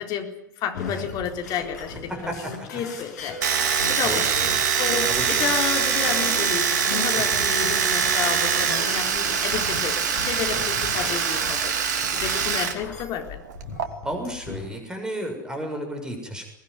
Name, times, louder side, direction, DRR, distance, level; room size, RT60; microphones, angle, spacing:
voice 1, 0.0-13.4, left 8 dB, 40° left, 4 dB, 4.2 m, -31 dB
sound 1, 0.7-14.6, left 4 dB, 60° left, 6.7 m, -38 dB
voice 2, 2.3-2.8 4.0-4.6 5.1-5.5 7.1-7.5 14.0-16.4, right 1 dB, 5° right, 4 dB, 6.7 m, -33 dB
Domestic sounds home sounds, 3.4-12.8 13.0-13.9, right 7 dB, 65° right, 2.7 m, -23 dB
22.5 x 20.0 x 9.7 m, 0.76 s
figure-of-eight pair, 85°, 10 cm